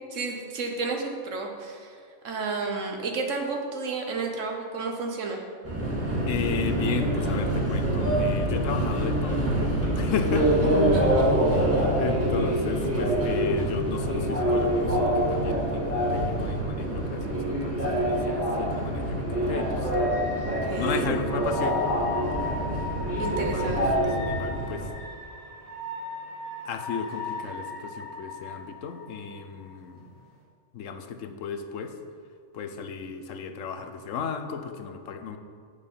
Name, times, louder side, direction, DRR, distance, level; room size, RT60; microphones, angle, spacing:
voice 1, 0.1-2.0 2.2-5.4 10.9-11.3 20.4-21.2 23.2-23.9, right 4 dB, 80° right, 2 dB, 1.4 m, -32 dB
Subway metro underground, 5.6-24.9, right 1 dB, 10° right, 2.0 m, -25 dB
voice 2, 6.3-10.5 11.4-19.9 20.7-21.8 23.4-23.7 24.2-24.9 26.6-30.0 30.7-32.0 32.5-35.4, left 6 dB, 85° left, 7 dB, 1.1 m, -34 dB
sound 1, 14.5-30.4, left 3 dB, 55° right, 2.4 m, -40 dB
8.5 x 6.7 x 5.5 m, 2.2 s
omnidirectional pair, 1.3 m